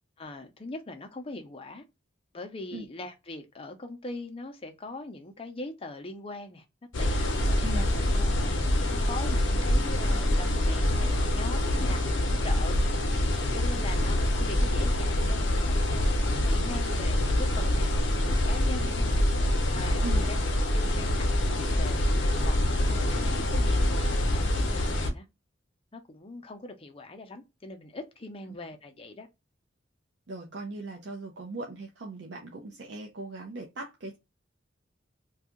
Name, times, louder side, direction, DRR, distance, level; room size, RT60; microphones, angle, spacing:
voice 1, 0.2-1.8 2.3-6.6 7.0-8.3 8.9-12.8 13.5-19.1 19.7-22.1 22.4-25.3 25.9-29.3, left 2 dB, 30° left, 0.6 m, -42 dB
sound 1, 6.9-25.1, left 1 dB, 75° left, 0.7 m, -25 dB
voice 2, 30.3-34.2, right 2 dB, 65° right, 0.5 m, -39 dB
2.7 x 2.3 x 3.6 m
head